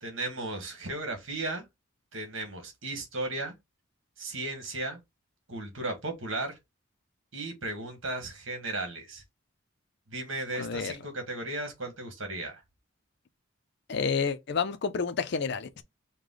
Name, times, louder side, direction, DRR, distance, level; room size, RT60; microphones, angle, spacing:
voice 1, 0.0-1.6 2.1-3.5 4.2-5.0 5.5-6.6 7.3-9.2 10.1-12.6, right 2 dB, 65° right, 1.5 m, -35 dB
voice 2, 10.5-10.9 13.9-15.8, left 5 dB, 55° left, 0.5 m, -30 dB
4.8 x 2.2 x 3.8 m
head